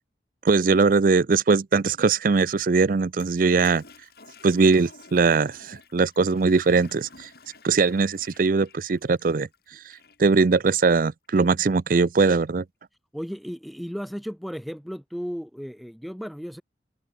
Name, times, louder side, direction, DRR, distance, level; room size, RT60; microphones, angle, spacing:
voice 1, 0.4-3.8 4.4-7.3 7.6-9.5 10.2-12.6, right 4 dB, 50° right, 0.5 m, -21 dB
Toilet flush, 3.1-10.3, left 3 dB, 60° left, 4.6 m, -51 dB
voice 2, 13.1-16.6, equal, ahead, 2.1 m, -34 dB
open air
head